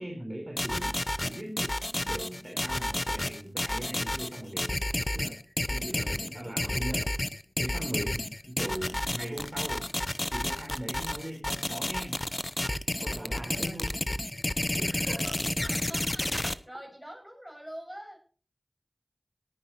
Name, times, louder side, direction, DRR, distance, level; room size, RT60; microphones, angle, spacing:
voice 1, 0.0-4.9 5.1-7.1 7.6-9.9 10.3-12.2 13.0-14.0 14.7-15.4, right 1 dB, 30° right, 0 dB, 3.9 m, -39 dB
sound 1, 0.6-16.5, left 1 dB, 30° left, 0.8 m, -31 dB
voice 2, 1.9-2.2 5.8-6.5 13.1-13.8 15.0-15.3 15.6-18.2, equal, 10° right, 2 dB, 6.8 m, -46 dB
19.5 x 9.6 x 3.0 m, 0.39 s
wide cardioid pair, 40°, 0 cm